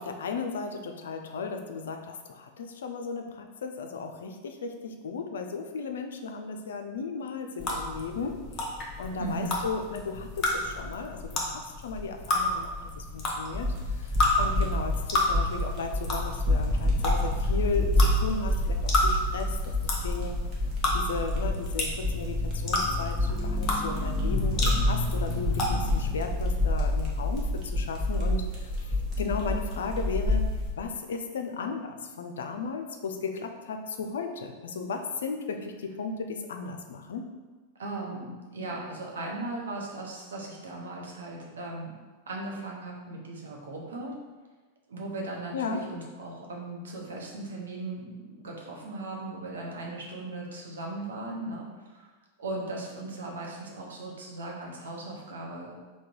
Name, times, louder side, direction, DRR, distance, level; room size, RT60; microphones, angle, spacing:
voice 1, 0.0-11.5 11.8-13.7 14.0-20.4 20.9-30.4 30.8-37.3 45.5-45.8, left 4 dB, 65° left, 5 dB, 0.4 m, -35 dB
sound 1, 7.6-26.1, left 2 dB, 30° left, 0.8 m, -31 dB
voice 2, 9.2-9.6 37.8-41.9 42.3-44.1 44.9-52.1 52.4-55.7, right 2 dB, 65° right, -2 dB, 0.8 m, -37 dB
sound 2, 13.5-30.7, left 1 dB, 35° right, 1.0 m, -28 dB
3.6 x 2.2 x 4.4 m, 1.3 s
figure-of-eight pair, 90°, 0 cm